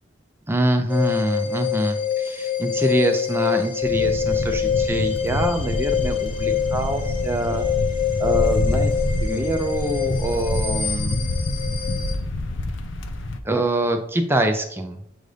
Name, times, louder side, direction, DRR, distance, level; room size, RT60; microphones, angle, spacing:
voice 1, 0.5-7.6 8.2-8.9 9.2-11.2 13.4-15.0, right 1 dB, 10° right, 5 dB, 0.5 m, -25 dB
sound 1, 0.9-12.1, left 8 dB, 25° left, 1.0 m, -25 dB
sound 2, 3.8-13.4, left 1 dB, 75° left, 0.6 m, -27 dB
7.7 x 2.6 x 4.9 m, 0.74 s
head